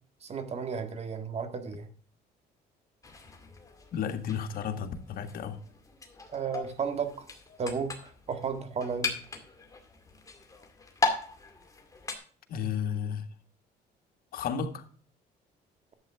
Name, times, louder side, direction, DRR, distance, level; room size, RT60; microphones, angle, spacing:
voice 1, 0.2-1.9 6.3-7.3 7.6-9.1, right 6 dB, 40° right, 8 dB, 1.8 m, -33 dB
sound 1, 3.0-12.2, left 3 dB, 20° left, 2.1 m, -38 dB
voice 2, 3.9-5.6 12.5-13.3 14.3-14.8, left 7 dB, 60° left, 5 dB, 1.7 m, -33 dB
11.0 x 8.0 x 3.6 m, 0.43 s
cardioid pair, 110°, 17 cm